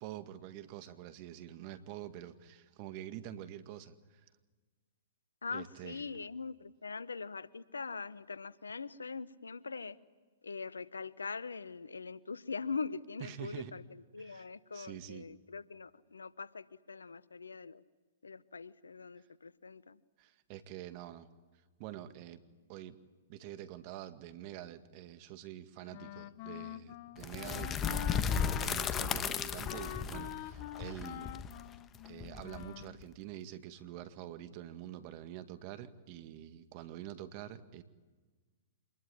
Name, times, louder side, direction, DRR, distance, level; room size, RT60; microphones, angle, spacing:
voice 1, 0.0-4.2 5.5-6.1 13.2-13.7 14.2-14.5 14.7-15.3 20.2-21.3 21.8-22.4 22.7-23.0 23.3-31.3 32.0-37.8, right 12 dB, 45° right, 10 dB, 1.9 m, -46 dB
voice 2, 5.4-10.0 10.4-13.8 14.1-17.8 18.2-20.0, left 4 dB, 85° left, 18 dB, 1.0 m, -42 dB
Wind instrument woodwind instrument, 25.9-33.0, left 15 dB, 45° left, 0.7 m, -45 dB
sound 1, 27.2-33.0, left 7 dB, 25° left, 1.2 m, -35 dB
26.5 x 21.0 x 9.8 m, 1.4 s
hypercardioid pair, 120°, 0 cm